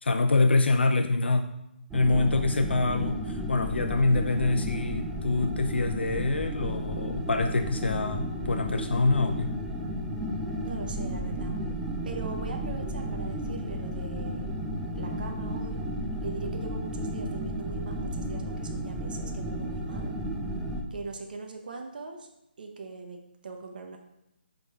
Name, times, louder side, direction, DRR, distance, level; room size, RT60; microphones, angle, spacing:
voice 1, 0.0-1.5 1.9-9.5, left 3 dB, 90° left, 6 dB, 0.5 m, -25 dB
sound 1, 1.9-20.8, equal, 5° right, 0.5 m, -33 dB
voice 2, 10.6-11.5 12.0-14.5 15.0-15.8 16.2-20.2 20.9-22.3 22.6-23.2 23.4-24.0, right 4 dB, 55° right, 3 dB, 0.8 m, -41 dB
8.2 x 3.8 x 3.6 m, 0.83 s
hypercardioid pair, 160°, 6 cm